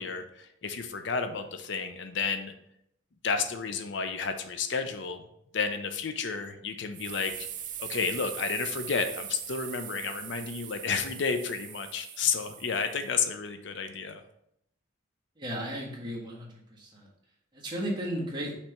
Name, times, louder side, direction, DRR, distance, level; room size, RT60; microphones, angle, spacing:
voice 1, 0.0-2.5 3.2-5.2 5.5-7.5 7.8-14.2, left 5 dB, 65° left, 8 dB, 0.5 m, -31 dB
sound 1, 6.9-13.1, right 10 dB, 40° right, 0.5 m, -41 dB
voice 2, 15.4-17.1 17.5-18.5, equal, 25° right, -4 dB, 1.5 m, -35 dB
5.8 x 3.3 x 5.7 m, 0.75 s
head